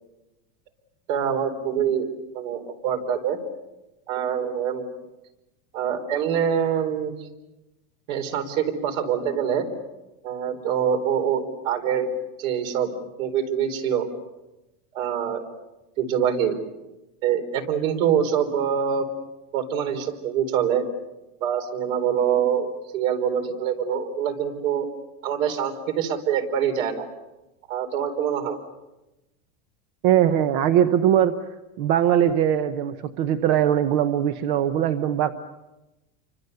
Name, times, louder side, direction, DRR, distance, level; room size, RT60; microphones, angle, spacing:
voice 1, 1.1-2.1 2.3-3.4 4.1-4.9 5.7-7.1 8.1-9.7 10.2-12.1 12.4-12.9 13.2-14.1 14.9-15.4 16.0-16.5 17.2-19.1 19.5-20.8 21.4-24.9 25.2-27.1 27.7-28.6, right 8 dB, 65° right, 7 dB, 4.3 m, -25 dB
voice 2, 30.0-31.3 31.8-35.3, right 10 dB, 35° right, 10 dB, 0.9 m, -21 dB
29.5 x 25.0 x 6.8 m, 1.0 s
supercardioid pair, 175°, 44 cm